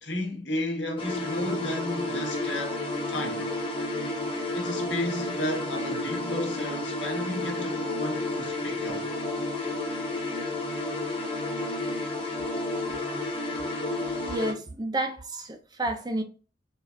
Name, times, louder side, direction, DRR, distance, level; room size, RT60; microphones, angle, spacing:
voice 1, 0.0-2.8 3.1-3.5 4.5-9.1, left 1 dB, 75° left, 1.3 m, -33 dB
sound 1, 1.0-14.5, left 2 dB, 30° left, 1.3 m, -31 dB
voice 2, 14.3-16.2, right 1 dB, 25° right, 0.5 m, -30 dB
4.9 x 2.5 x 2.6 m
head